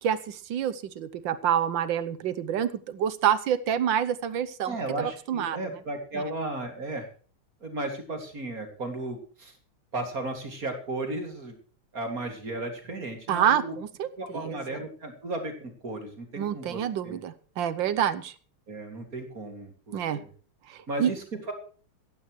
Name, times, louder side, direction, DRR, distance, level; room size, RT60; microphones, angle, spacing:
voice 1, 0.0-5.6 13.3-14.6 16.4-18.3 19.9-20.2 20.7-21.1, right 9 dB, 65° right, 15 dB, 1.4 m, -27 dB
voice 2, 4.6-7.1 7.6-9.6 9.9-11.5 11.9-13.8 14.2-17.2 18.7-20.3 20.9-21.5, right 2 dB, 40° right, 4 dB, 2.9 m, -35 dB
16.0 x 15.0 x 3.2 m, 0.41 s
omnidirectional pair, 2.4 m